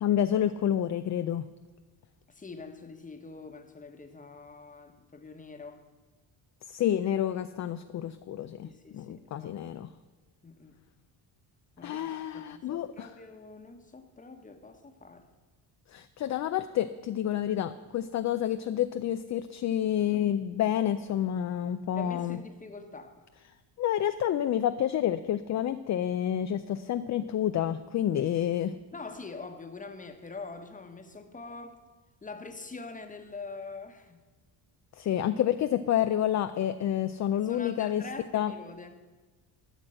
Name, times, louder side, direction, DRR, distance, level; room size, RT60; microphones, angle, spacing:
voice 1, 0.0-1.4 6.7-9.9 11.8-13.1 15.9-22.4 23.8-28.7 35.0-38.0 38.3-38.5, left 11 dB, 40° left, 10 dB, 0.4 m, -29 dB
voice 2, 2.3-5.8 8.6-9.5 10.4-10.8 11.8-15.3 22.0-23.2 28.9-31.8 32.2-34.2 37.3-39.1, left 3 dB, 15° left, 6 dB, 1.1 m, -44 dB
13.0 x 6.1 x 6.3 m, 1.3 s
cardioid pair, 95°, 48 cm